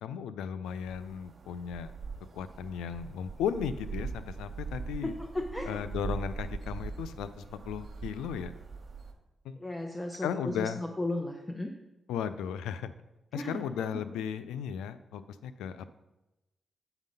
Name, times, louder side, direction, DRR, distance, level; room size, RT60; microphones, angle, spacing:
voice 1, 0.0-1.9 2.3-5.2 5.7-8.5 9.4-9.6 10.2-10.8 12.1-12.9 13.3-15.9, left 8 dB, 90° left, 12 dB, 0.3 m, -35 dB
sound 1, 0.6-9.1, right 5 dB, 55° right, 1.0 m, -41 dB
voice 2, 5.0-5.8 9.6-11.7 13.3-13.6, left 1 dB, 25° left, 2 dB, 0.8 m, -35 dB
8.0 x 3.9 x 5.2 m, 0.97 s
supercardioid pair, 40°, 0 cm